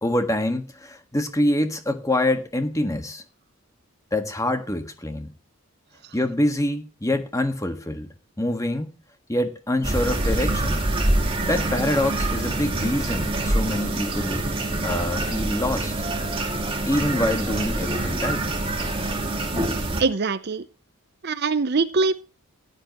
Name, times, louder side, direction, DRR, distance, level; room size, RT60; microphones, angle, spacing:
voice 1, 0.0-3.2 4.1-5.3 6.1-8.1 8.4-8.9 9.3-10.8 11.5-14.4 14.8-15.9 16.9-18.4 19.5-19.7, left 1 dB, 15° left, 1.5 m, -25 dB
sound 1, 9.8-20.0, right 2 dB, 25° right, 2.3 m, -25 dB
voice 2, 20.0-20.7 21.2-22.1, right 4 dB, 45° right, 0.6 m, -23 dB
15.5 x 11.0 x 3.0 m
head